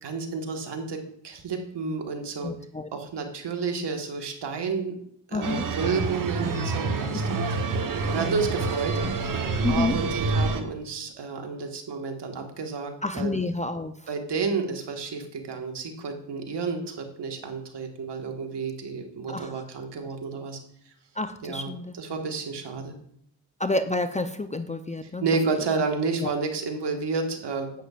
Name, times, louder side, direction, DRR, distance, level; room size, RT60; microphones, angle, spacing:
voice 1, 0.0-2.5 2.9-4.9 5.3-7.4 8.1-9.0 9.7-13.3 14.1-20.6 21.4-22.9 25.0-27.8, right 4 dB, 65° right, 3 dB, 1.7 m, -31 dB
voice 2, 2.4-2.9 5.3-5.6 9.6-10.0 13.0-13.9 19.3-19.5 21.2-21.9 23.6-25.2 26.2-26.3, left 2 dB, 15° left, 9 dB, 0.6 m, -29 dB
sound 1, 5.4-10.6, right 3 dB, 45° right, 1.2 m, -27 dB
10.5 x 8.2 x 2.5 m, 0.69 s
supercardioid pair, 60°, 45 cm